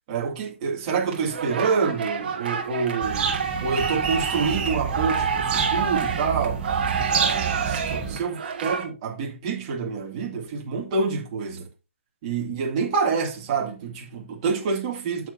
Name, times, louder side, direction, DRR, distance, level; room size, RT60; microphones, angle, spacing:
voice 1, 0.1-6.6 7.1-11.7 12.2-15.3, right 5 dB, 30° right, 2.2 m, -27 dB
sound 1, 1.1-8.9, right 6 dB, 45° right, 1.6 m, -28 dB
sound 2, 3.0-8.2, right 6 dB, 15° right, 1.1 m, -30 dB
8.8 x 7.3 x 2.7 m
hypercardioid pair, 155°, 7 cm